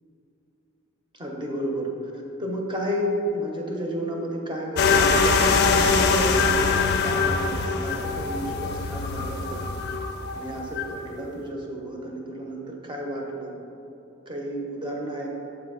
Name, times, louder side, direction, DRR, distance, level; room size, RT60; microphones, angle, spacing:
voice 1, 1.1-1.9 2.4-9.6 10.3-13.5 14.3-15.3, equal, 25° right, 0 dB, 0.7 m, -32 dB
sound 1, 4.8-11.0, left 4 dB, 50° left, 0.4 m, -23 dB
7.0 x 2.8 x 5.5 m, 2.9 s
head